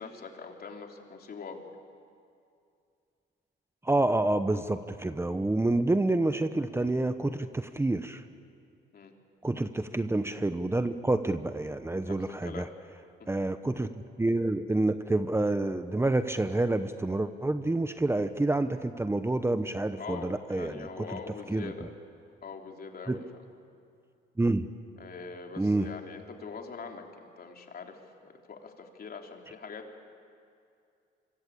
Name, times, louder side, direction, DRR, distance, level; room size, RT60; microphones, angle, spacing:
voice 1, 0.0-1.6 8.9-9.1 12.0-12.7 13.2-13.3 20.0-21.9 22.4-23.3 25.0-30.0, left 5 dB, 50° left, 2 dB, 3.4 m, -43 dB
voice 2, 3.8-8.2 9.4-12.7 13.3-13.9 14.2-21.2 21.5-21.7 23.1-23.2 24.4-24.7 25.6-25.9, right 2 dB, 10° right, 10 dB, 1.0 m, -28 dB
26.0 x 25.0 x 8.7 m, 2.4 s
cardioid pair, 90°, 20 cm